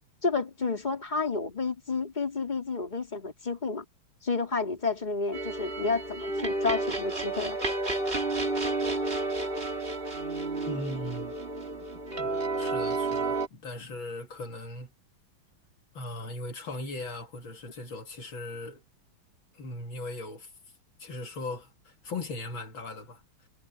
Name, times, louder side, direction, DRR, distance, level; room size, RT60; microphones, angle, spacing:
voice 1, 0.2-3.8 4.2-7.6, left 4 dB, 20° left, 3.4 m, -30 dB
sound 1, 5.3-13.5, right 2 dB, 25° right, 2.9 m, -31 dB
voice 2, 10.7-11.4 11.8-11.9 12.2-14.9 15.9-18.8 19.5-20.5 21.0-23.5, left 2 dB, 70° left, 2.9 m, -39 dB
omnidirectional pair, 2.3 m